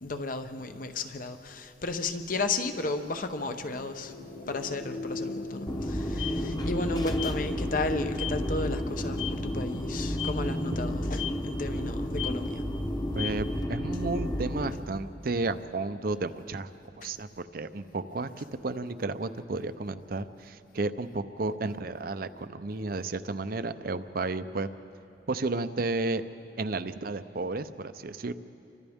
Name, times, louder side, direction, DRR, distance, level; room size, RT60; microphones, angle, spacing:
voice 1, 0.0-4.1 4.5-12.7 17.0-17.1, left 3 dB, 50° left, 8 dB, 0.9 m, -34 dB
sound 1, 3.6-15.9 16.3-19.3, left 2 dB, 85° left, 1.2 m, -40 dB
sound 2, 5.7-14.7, left 1 dB, 25° left, 1.1 m, -31 dB
voice 2, 13.1-16.7 17.0-24.7 25.3-26.2 26.6-28.3, right 3 dB, 55° right, 12 dB, 0.7 m, -32 dB
29.5 x 24.5 x 3.6 m, 2.8 s
head